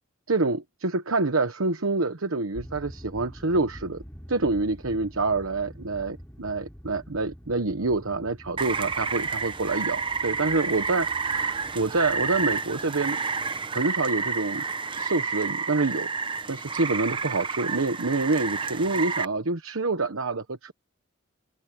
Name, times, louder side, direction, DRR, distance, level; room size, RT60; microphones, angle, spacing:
voice 1, 0.3-4.0 4.3-13.2 13.7-14.6 14.9-16.1 16.5-20.7, right 3 dB, 80° right, 1.1 m, -27 dB
sound 1, 2.5-12.6, equal, 10° left, 4.0 m, -46 dB
Rain, 8.6-19.3, right 5 dB, 25° right, 0.8 m, -30 dB
head